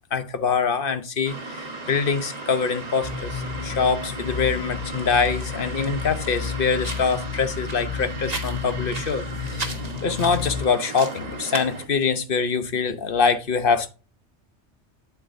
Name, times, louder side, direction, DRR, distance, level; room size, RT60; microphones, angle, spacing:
voice 1, 0.1-9.7 10.0-13.9, left 5 dB, 50° left, 1.0 m, -24 dB
sound 1, 1.2-11.9, right 3 dB, 35° right, 1.4 m, -35 dB
sound 2, 3.0-10.7, left 6 dB, 30° left, 0.9 m, -32 dB
8.2 x 8.1 x 2.6 m
omnidirectional pair, 1.2 m